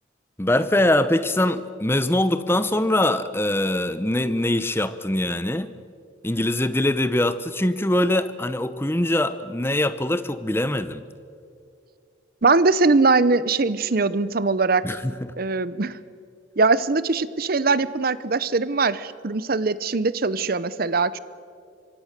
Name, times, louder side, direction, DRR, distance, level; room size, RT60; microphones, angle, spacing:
voice 1, 0.4-5.7 6.2-11.0 14.8-15.3, left 1 dB, 10° left, 13 dB, 0.8 m, -23 dB
voice 2, 12.4-14.8 15.4-16.0 16.6-21.2, right 3 dB, 45° right, 17 dB, 0.7 m, -21 dB
25.5 x 24.0 x 6.7 m, 2.4 s
head